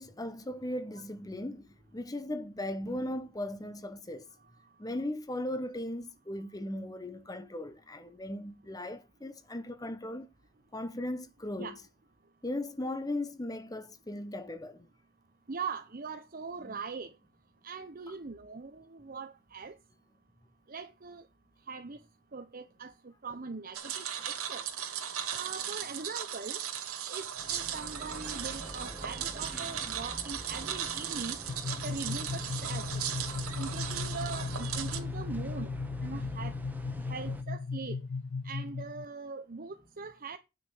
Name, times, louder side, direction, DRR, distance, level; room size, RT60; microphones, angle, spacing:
voice 1, 0.0-4.3 4.8-10.3 10.7-11.8 12.4-14.9 16.6-16.8 35.2-35.4 36.1-36.5, left 1 dB, 15° left, 0.9 m, -38 dB
voice 2, 15.5-17.1 17.6-19.7 20.7-21.2 21.7-22.0 22.3-24.7 25.3-26.6 27.1-31.4 31.7-32.9 33.6-35.7 36.0-36.5 37.1-38.0 38.4-40.4, right 4 dB, 40° right, 0.8 m, -41 dB
sound 1, 23.7-35.0, right 9 dB, 80° right, 2.4 m, -37 dB
sound 2, 27.4-37.4, equal, 10° right, 1.3 m, -45 dB
sound 3, 31.5-39.0, left 4 dB, 70° left, 0.4 m, -37 dB
9.7 x 5.5 x 6.3 m
head